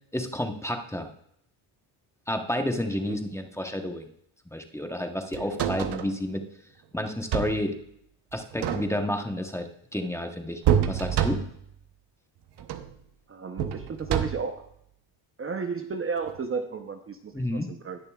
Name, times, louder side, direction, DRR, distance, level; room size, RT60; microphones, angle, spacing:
voice 1, 0.1-1.1 2.3-4.1 4.5-6.4 6.9-7.8 8.3-10.6 10.9-11.4 17.3-17.7, left 1 dB, 5° left, 4 dB, 1.0 m, -30 dB
sound 1, 5.3-6.1 7.1-7.7 8.4-9.2 10.6-11.7 12.6-13.0 13.6-14.6 16.3-16.4, right 9 dB, 55° right, 0.9 m, -27 dB
voice 2, 13.3-14.6 15.4-18.0, right 5 dB, 25° right, 6 dB, 0.8 m, -33 dB
19.0 x 6.7 x 2.4 m, 0.71 s
cardioid pair, 100°, 48 cm